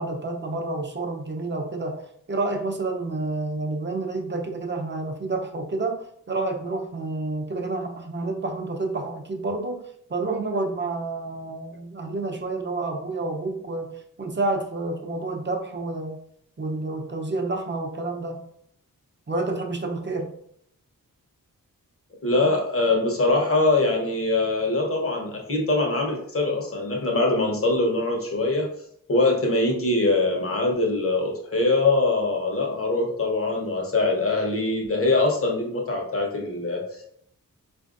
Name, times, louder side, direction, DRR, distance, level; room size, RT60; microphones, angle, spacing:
voice 1, 0.0-2.0 2.3-16.2 16.6-18.4 19.3-20.3, right 2 dB, 35° right, 3 dB, 0.7 m, -29 dB
voice 2, 22.2-28.7 29.1-37.1, left 2 dB, 40° left, 0 dB, 1.0 m, -23 dB
4.2 x 2.6 x 2.5 m, 0.67 s
cardioid pair, 65°, 34 cm